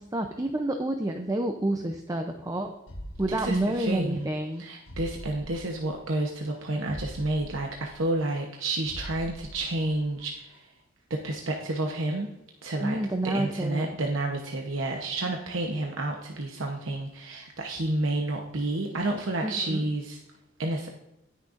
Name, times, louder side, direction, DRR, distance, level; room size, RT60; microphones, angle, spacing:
voice 1, 0.0-2.7 3.2-4.6 12.8-14.0 19.4-19.8, right 1 dB, 15° right, 4 dB, 0.6 m, -29 dB
sound 1, 2.9-4.2 4.5-4.6 4.9-6.2 6.5-6.6 6.9-8.6 8.9-10.2 10.5-10.6, equal, 70° left, 1.4 m, -43 dB
voice 2, 3.4-4.3 4.6-10.7 11.1-12.3 12.6-13.0 13.2-20.2 20.6-20.9, right 2 dB, 70° right, 1 dB, 1.0 m, -30 dB
18.5 x 6.6 x 2.6 m, 0.89 s
head